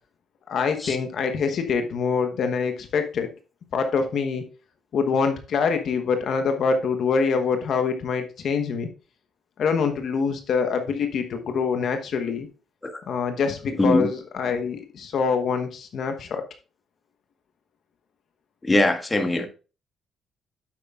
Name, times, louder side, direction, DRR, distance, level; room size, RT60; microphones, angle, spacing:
voice 1, 0.5-3.3 3.7-4.4 4.9-8.9 9.6-12.5 13.1-16.4, left 5 dB, 65° left, 6 dB, 1.1 m, -25 dB
voice 2, 18.6-19.5, left 1 dB, 20° left, 5 dB, 1.5 m, -21 dB
9.0 x 7.8 x 2.4 m, 0.34 s
cardioid pair, 90°, 0 cm